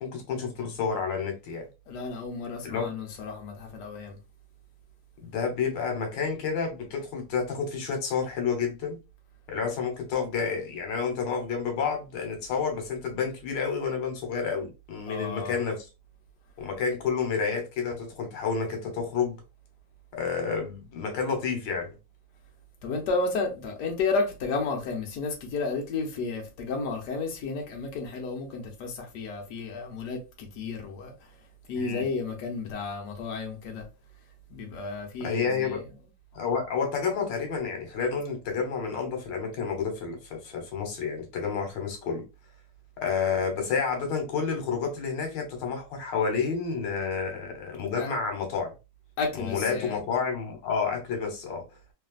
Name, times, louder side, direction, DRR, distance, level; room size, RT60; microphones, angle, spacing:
voice 1, 0.0-1.7 2.6-2.9 5.2-9.0 9.5-15.9 16.6-19.4 20.1-21.9 31.7-32.1 35.2-35.8 36.3-42.2 43.0-48.7 49.3-51.6, left 5 dB, 85° left, 1.6 m, -30 dB
voice 2, 1.9-4.2 15.1-15.6 22.8-31.1 31.7-33.8 34.5-35.8 48.0-48.1 49.2-50.0, left 4 dB, 70° left, 1.3 m, -32 dB
3.3 x 2.5 x 2.3 m
omnidirectional pair, 1.9 m